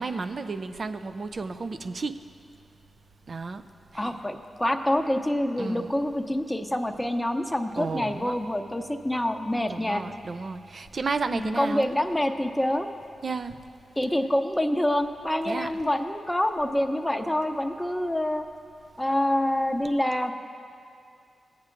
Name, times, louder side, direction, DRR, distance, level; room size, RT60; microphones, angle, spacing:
voice 1, 0.0-2.2 3.3-3.6 3.9-4.1 5.6-5.9 7.8-8.4 9.7-11.9 13.2-13.6 15.5-15.7, right 4 dB, 60° right, 10 dB, 0.4 m, -32 dB
voice 2, 3.9-10.0 11.3-12.9 14.0-18.4 19.0-20.3, left 1 dB, 10° left, 6 dB, 0.7 m, -26 dB
17.5 x 8.5 x 2.6 m, 2.5 s
cardioid pair, 55°, 0 cm